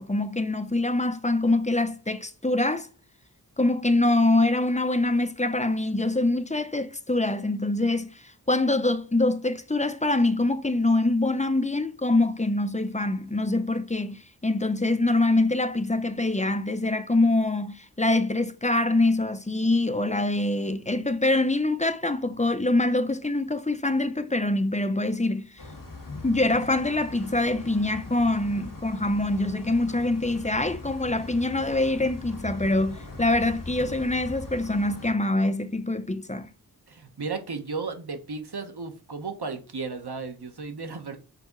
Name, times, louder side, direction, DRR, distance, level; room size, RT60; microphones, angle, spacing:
voice 1, 0.0-2.9 3.6-25.5 26.2-36.5, left 2 dB, 20° left, 0.6 m, -24 dB
sound 1, 25.6-35.1, left 2 dB, 55° left, 1.5 m, -41 dB
voice 2, 36.9-41.2, right 4 dB, 75° right, 1.2 m, -34 dB
6.6 x 4.2 x 3.7 m
wide cardioid pair, 55°, 39 cm